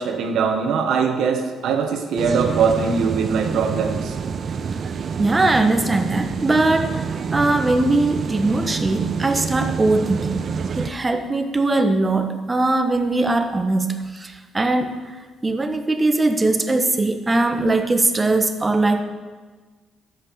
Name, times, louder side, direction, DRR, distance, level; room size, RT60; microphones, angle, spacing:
voice 1, 0.0-4.1, right 5 dB, 80° right, 5 dB, 1.3 m, -21 dB
sound 1, 2.2-10.9, right 6 dB, 50° right, 0.6 m, -27 dB
voice 2, 5.2-10.5 10.8-14.9 15.4-19.0, right 2 dB, 20° right, 7 dB, 1.3 m, -20 dB
11.5 x 8.2 x 6.8 m, 1.4 s
cardioid pair, 90°, 0 cm